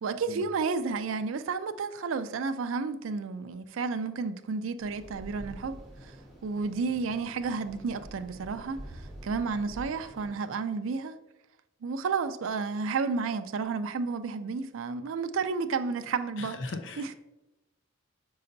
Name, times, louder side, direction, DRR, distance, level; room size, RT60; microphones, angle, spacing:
voice 1, 0.0-6.1 6.4-11.2 11.8-16.6 17.0-17.1, right 4 dB, 75° right, 0.4 m, -31 dB
sound 1, 4.8-10.3, right 1 dB, ahead, 1.3 m, -47 dB
voice 2, 16.4-17.1, left 3 dB, 60° left, 0.5 m, -38 dB
6.6 x 5.5 x 2.6 m
head